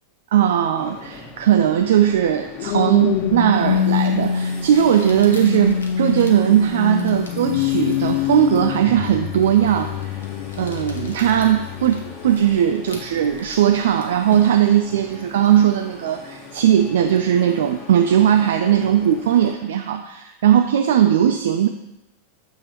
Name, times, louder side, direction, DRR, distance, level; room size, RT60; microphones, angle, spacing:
voice 1, 0.3-10.2 10.6-21.7, right 10 dB, 60° right, 5 dB, 0.3 m, -18 dB
sound 1, 0.8-19.6, left 3 dB, 30° left, 1.2 m, -41 dB
sound 2, 2.2-12.7 13.3-13.6, left 9 dB, 45° left, 0.3 m, -25 dB
Crumpling crinkling, 3.8-3.9 4.7-14.8, left 3 dB, 70° left, 0.9 m, -43 dB
7.4 x 3.0 x 4.5 m, 0.93 s
figure-of-eight pair, 90°, 0 cm